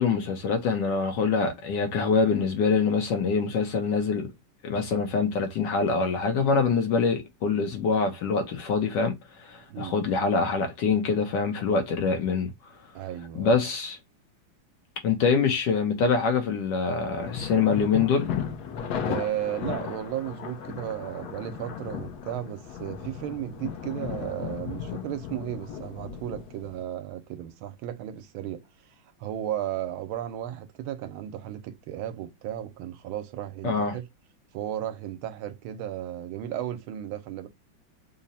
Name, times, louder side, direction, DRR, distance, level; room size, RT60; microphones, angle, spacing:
voice 1, 0.0-4.3 4.6-12.5 13.3-14.0 15.0-18.3 33.6-33.9, left 5 dB, 70° left, 1.2 m, -25 dB
voice 2, 12.9-13.6 19.1-28.7 29.2-34.0 34.5-37.5, right 12 dB, 85° right, 1.4 m, -34 dB
sound 1, 17.2-26.8, left 7 dB, 85° left, 0.8 m, -35 dB
3.7 x 2.0 x 4.0 m
omnidirectional pair, 2.3 m